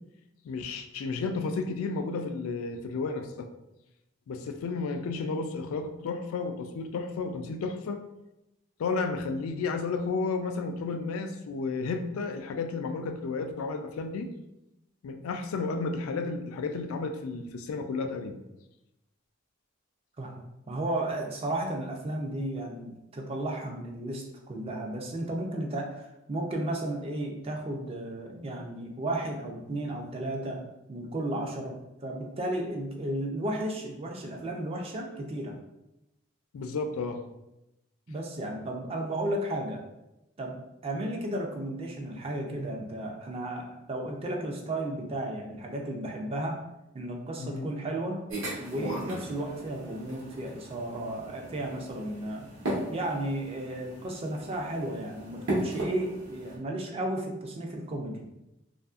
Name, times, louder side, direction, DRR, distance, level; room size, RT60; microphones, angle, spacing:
voice 1, 0.4-3.5 4.3-8.0 8.8-14.3 15.0-18.4 36.5-37.2 47.4-47.7, left 4 dB, 80° left, 7 dB, 0.3 m, -32 dB
voice 2, 20.2-30.6 30.9-31.8 32.0-35.6 38.1-39.8 40.4-46.6 46.9-48.2 48.6-52.5 52.9-58.3, right 1 dB, 25° right, 1 dB, 0.3 m, -34 dB
sound 1, 48.3-56.6, right 1 dB, 70° right, 0.9 m, -37 dB
2.7 x 2.4 x 2.3 m, 0.91 s
head